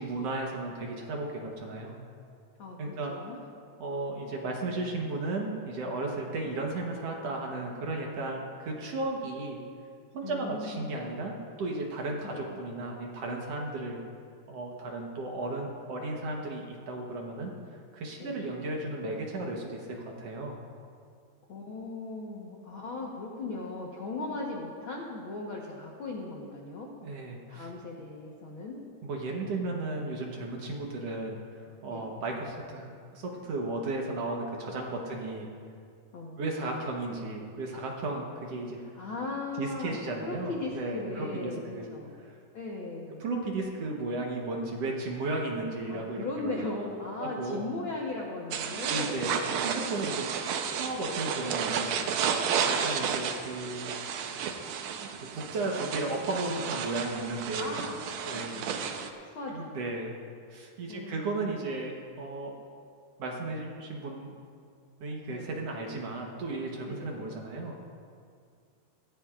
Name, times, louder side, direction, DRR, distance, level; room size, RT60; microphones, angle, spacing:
voice 1, 0.0-2.0 2.8-3.1 3.8-9.6 10.1-14.0 14.5-17.5 17.9-20.6 27.0-27.7 29.0-31.4 31.8-35.5 36.4-38.8 39.6-41.9 42.2-42.3 43.2-46.5 47.2-47.7 48.9-50.3 50.7-52.0 52.6-53.8 55.0-57.8 58.3-58.5 59.5-60.1 60.5-62.5 63.2-64.3 65.0-67.7, right 2 dB, 60° right, 0 dB, 1.7 m, -34 dB
voice 2, 2.6-3.4 10.2-11.0 12.2-12.4 18.2-18.3 21.5-26.9 27.5-28.8 29.4-30.1 31.9-32.1 35.1-35.2 36.1-36.5 38.7-42.1 42.5-43.2 45.9-49.5 52.4-52.7 57.6-58.0 58.3-58.9 59.2-59.8 60.9-61.5 65.3-65.5 66.8-67.3, left 3 dB, 70° left, -2 dB, 1.2 m, -38 dB
sound 1, 48.5-59.1, right 7 dB, 90° right, 1.5 m, -32 dB
19.5 x 15.0 x 2.5 m, 2.3 s
omnidirectional pair, 4.0 m